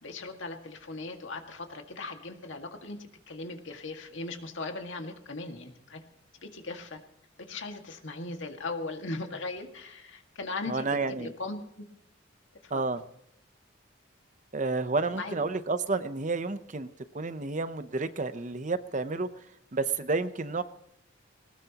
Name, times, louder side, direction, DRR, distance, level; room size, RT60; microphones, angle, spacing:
voice 1, 0.0-6.0 6.4-7.0 7.4-11.9 12.6-12.8 15.1-15.3, left 3 dB, 70° left, 4 dB, 1.9 m, -38 dB
voice 2, 10.7-11.3 12.7-13.0 14.5-16.9 17.1-19.3 19.7-20.6, right 3 dB, 40° right, 11 dB, 0.7 m, -30 dB
20.0 x 19.5 x 2.9 m, 0.75 s
head